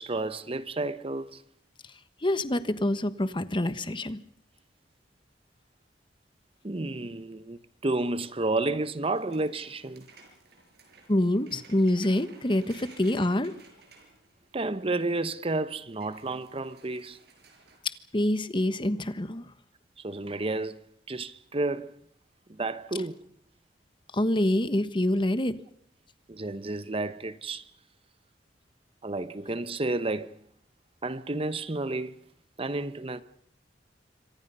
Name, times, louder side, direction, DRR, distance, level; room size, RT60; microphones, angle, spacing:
voice 1, 0.0-1.4 6.6-10.1 14.5-17.2 20.0-20.8 21.1-21.9 22.5-23.3 26.3-27.7 29.0-30.4 31.0-32.2 32.6-33.2, right 2 dB, 30° right, 0.9 m, -31 dB
voice 2, 2.2-4.2 11.1-13.5 18.1-19.5 24.1-25.5, left 1 dB, 30° left, 1.3 m, -26 dB
sound 1, 9.1-15.0 15.4-15.5 15.7-17.8, right 3 dB, 65° right, 6.6 m, -55 dB
27.0 x 25.0 x 5.5 m
head